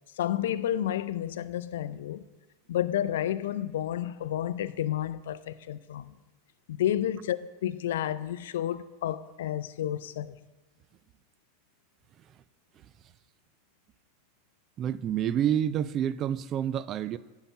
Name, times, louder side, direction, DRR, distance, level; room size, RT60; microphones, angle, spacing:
voice 1, 0.2-2.2 2.7-6.1 6.7-10.4, left 11 dB, 80° left, 0.4 m, -31 dB
voice 2, 14.8-17.2, right 10 dB, 35° right, 0.4 m, -28 dB
10.0 x 5.7 x 5.5 m
hypercardioid pair, 115°, 0 cm